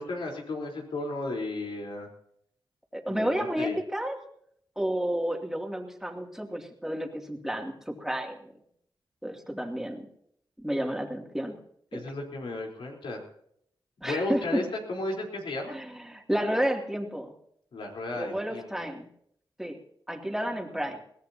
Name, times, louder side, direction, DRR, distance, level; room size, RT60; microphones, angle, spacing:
voice 1, 0.0-2.1 3.1-3.8 11.9-13.2 14.0-15.8 17.7-18.9 20.7-20.9, left 2 dB, 80° left, 0 dB, 3.9 m, -34 dB
voice 2, 2.9-4.2 4.8-8.5 9.2-10.0 10.6-11.6 11.9-12.0 14.0-14.6 15.7-17.3 18.1-19.1 19.6-19.8 20.1-21.0, equal, 5° right, 2 dB, 2.6 m, -31 dB
21.5 x 17.5 x 2.8 m, 0.69 s
cardioid pair, 80°, 9 cm